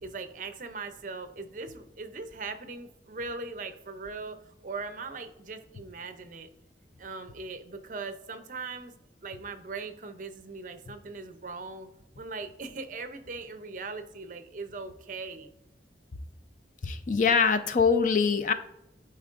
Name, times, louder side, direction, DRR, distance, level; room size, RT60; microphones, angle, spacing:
voice 1, 0.0-4.4 4.6-6.5 7.0-8.9 9.2-11.9 12.2-15.5, right 4 dB, 45° right, 9 dB, 0.6 m, -39 dB
voice 2, 16.8-18.5, left 5 dB, 45° left, 10 dB, 0.5 m, -23 dB
11.0 x 4.4 x 2.5 m, 0.89 s
head